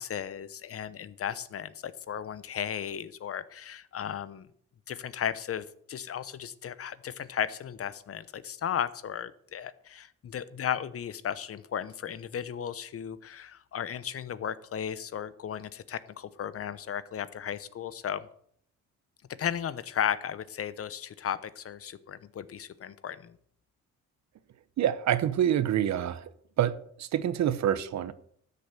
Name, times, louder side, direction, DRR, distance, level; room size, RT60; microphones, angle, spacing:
voice 1, 0.0-4.5 4.9-18.3 19.4-23.4, left 9 dB, 50° left, 0.9 m, -35 dB
voice 2, 24.8-26.3 26.6-28.1, right 10 dB, 65° right, 0.9 m, -27 dB
13.0 x 6.9 x 6.7 m
cardioid pair, 90°, 30 cm